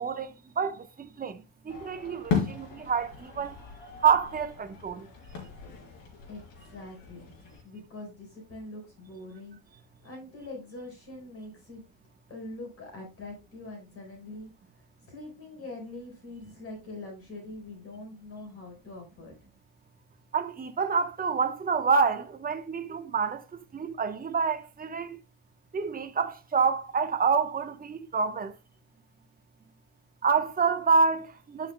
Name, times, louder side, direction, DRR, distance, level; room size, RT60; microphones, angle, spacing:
voice 1, 0.0-3.5 4.0-5.1 20.3-25.2 25.7-28.5 30.2-31.7, right 5 dB, 20° right, 1.1 m, -27 dB
sound 1, 1.7-7.6, left 6 dB, 60° left, 3.7 m, -36 dB
voice 2, 6.7-7.3 7.6-9.6 10.0-11.8 12.3-14.5 15.1-19.3, left 2 dB, 35° left, 4.7 m, -43 dB
11.5 x 6.1 x 2.2 m
cardioid pair, 115°, 40 cm